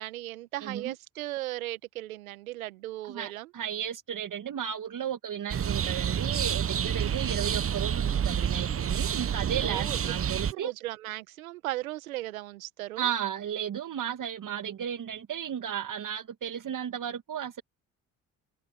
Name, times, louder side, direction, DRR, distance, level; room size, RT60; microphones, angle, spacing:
voice 1, 0.0-3.5 6.9-7.2 9.6-10.1 10.5-13.1, right 17 dB, 90° right, 1.6 m, -37 dB
voice 2, 0.6-0.9 3.1-10.7 13.0-17.6, right 9 dB, 50° right, 1.8 m, -34 dB
sound 1, 5.5-10.5, right 8 dB, 35° right, 0.9 m, -29 dB
hypercardioid pair, 50°, 41 cm